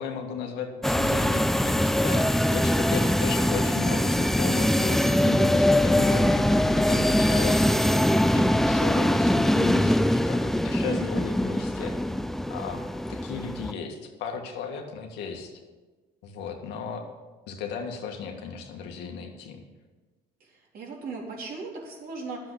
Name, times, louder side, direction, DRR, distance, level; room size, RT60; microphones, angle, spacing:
voice 1, 0.0-11.9 12.5-15.5 16.2-17.1 17.5-19.6, left 6 dB, 85° left, 3 dB, 1.9 m, -36 dB
sound 1, 0.8-13.7, left 1 dB, ahead, 0.3 m, -23 dB
voice 2, 10.7-11.1 20.7-22.4, right 4 dB, 60° right, -2 dB, 3.7 m, -37 dB
10.5 x 7.5 x 8.3 m, 1.3 s
cardioid pair, 110°, 17 cm